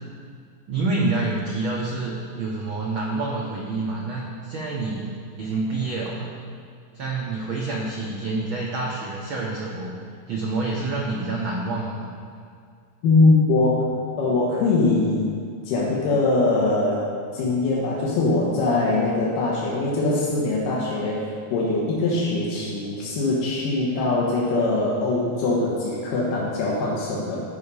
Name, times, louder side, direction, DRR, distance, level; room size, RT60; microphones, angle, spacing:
voice 1, 0.7-5.1 5.4-6.3 6.9-9.9 10.3-12.1, right 3 dB, 85° right, -3 dB, 1.1 m, -27 dB
voice 2, 13.0-13.8 14.2-15.3 15.7-17.0 17.3-27.4, left 2 dB, 90° left, -5 dB, 2.9 m, -22 dB
13.0 x 4.8 x 5.4 m, 2.2 s
omnidirectional pair, 3.7 m